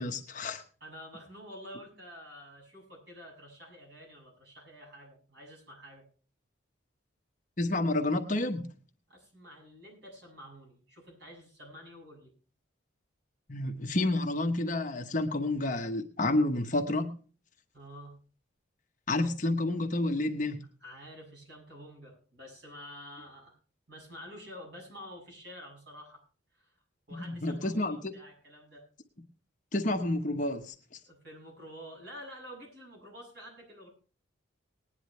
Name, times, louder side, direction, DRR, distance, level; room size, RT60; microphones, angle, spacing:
voice 1, 0.0-0.6 7.6-8.7 13.5-17.1 19.1-20.6 27.2-28.1 29.7-31.0, left 2 dB, 40° left, 5 dB, 1.1 m, -30 dB
voice 2, 0.8-6.0 9.1-12.3 17.7-18.1 20.8-23.6 23.9-26.2 26.5-26.7 27.1-28.8 31.1-33.9, equal, 55° right, -1 dB, 7.3 m, -49 dB
20.0 x 10.0 x 3.2 m, 0.37 s
head